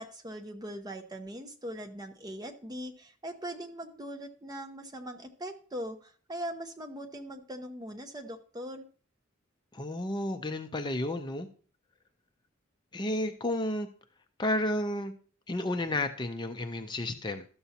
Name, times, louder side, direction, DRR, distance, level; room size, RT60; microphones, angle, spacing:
voice 1, 0.0-8.8, equal, 20° right, 5 dB, 0.8 m, -41 dB
voice 2, 9.7-11.5 12.9-13.9 14.4-15.1 15.5-17.5, left 1 dB, 20° left, 7 dB, 0.5 m, -32 dB
12.5 x 6.9 x 2.8 m, 0.42 s
head